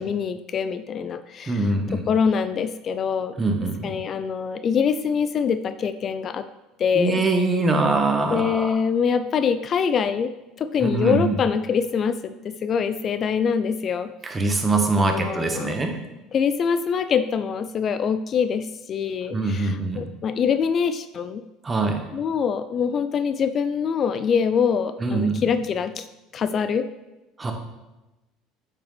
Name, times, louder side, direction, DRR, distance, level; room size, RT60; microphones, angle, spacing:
voice 1, 0.0-3.3 3.8-6.4 6.8-7.2 8.3-10.3 10.6-14.1 15.0-15.7 16.3-21.4 22.1-26.0 26.3-26.8, left 6 dB, 45° left, 11 dB, 0.4 m, -24 dB
voice 2, 1.5-2.0 3.4-4.0 6.9-8.7 10.8-11.3 14.2-15.9 19.3-20.0 21.6-22.0 25.0-25.4 27.4-27.5, right 3 dB, 25° right, 4 dB, 1.4 m, -23 dB
8.6 x 5.9 x 3.3 m, 1.0 s
hypercardioid pair, 75°, 0 cm